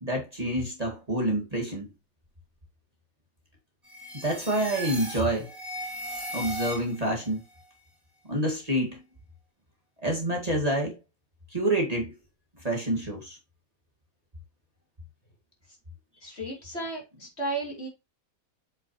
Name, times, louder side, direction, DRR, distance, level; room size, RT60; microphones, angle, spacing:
voice 1, 0.0-1.9 4.1-5.5 6.3-7.4 8.3-9.0 10.0-11.0 11.5-12.1 12.6-13.4, right 1 dB, 25° right, 2.0 m, -27 dB
sound 1, 3.8-7.2, equal, ahead, 3.2 m, -37 dB
voice 2, 16.2-17.9, right 2 dB, 45° left, 3.2 m, -34 dB
7.9 x 6.0 x 3.0 m
omnidirectional pair, 1.6 m